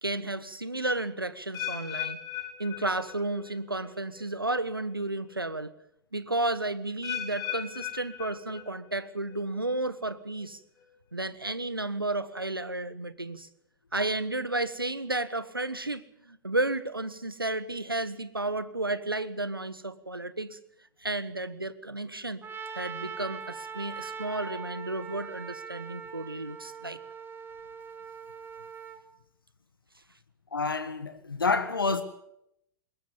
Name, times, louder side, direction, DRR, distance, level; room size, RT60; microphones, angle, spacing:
voice 1, 0.0-2.2 2.6-5.7 6.1-10.6 11.1-13.5 13.9-20.6 21.0-22.4 22.7-27.0, right 2 dB, 90° right, 1.4 m, -32 dB
sound 1, 1.5-3.6 3.8-4.3 4.9-5.0 7.0-9.0 9.3-9.7 10.4-10.5, left 11 dB, 35° left, 5.1 m, -37 dB
Trumpet, 22.4-29.0, right 5 dB, 20° right, 2.8 m, -41 dB
voice 2, 30.5-32.0, left 4 dB, 80° left, 1.5 m, -28 dB
22.0 x 20.0 x 7.2 m
figure-of-eight pair, 95°, 12 cm